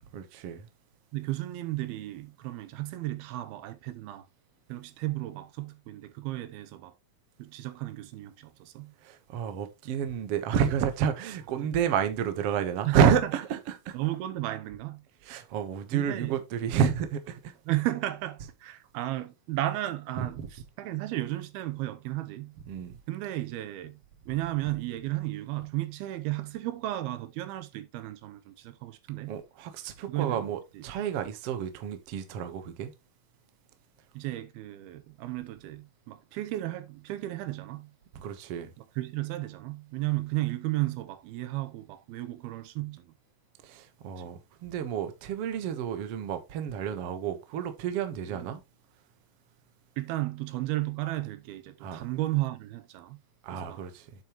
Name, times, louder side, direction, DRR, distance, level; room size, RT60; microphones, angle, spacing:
voice 1, 0.1-0.7 9.0-14.0 15.2-17.6 20.2-20.5 22.7-23.0 29.3-32.9 38.1-38.7 43.6-48.6 51.8-52.0 53.4-54.1, right 8 dB, 65° right, 1.5 m, -30 dB
voice 2, 1.1-4.3 4.7-7.0 7.4-8.9 11.6-11.7 12.8-13.3 13.9-15.1 15.9-16.4 17.7-22.6 23.1-29.4 30.1-30.8 34.1-38.0 38.8-43.1 44.2-44.3 48.3-48.5 50.0-53.2 53.5-53.8, right 16 dB, 80° right, 2.7 m, -34 dB
9.0 x 7.5 x 3.0 m
omnidirectional pair, 4.4 m